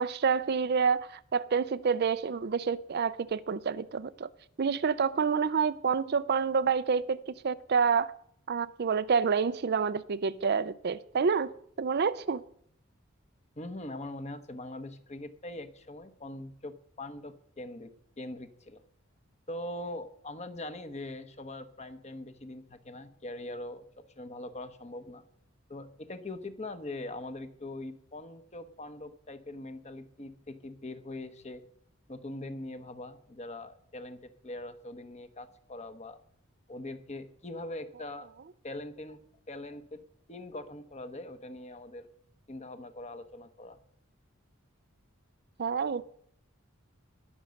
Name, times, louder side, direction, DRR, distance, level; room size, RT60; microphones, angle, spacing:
voice 1, 0.0-4.3 4.6-8.1 8.5-11.5 11.8-12.4 45.6-46.0, right 6 dB, 50° right, 0.5 m, -28 dB
voice 2, 13.6-17.9 18.2-18.8 19.5-23.9 24.2-25.2 25.7-31.6 32.1-36.2 36.7-38.3 38.6-39.2 39.5-40.0 40.3-42.1 42.5-43.8, left 1 dB, 30° left, 1.1 m, -42 dB
20.0 x 7.0 x 6.4 m
head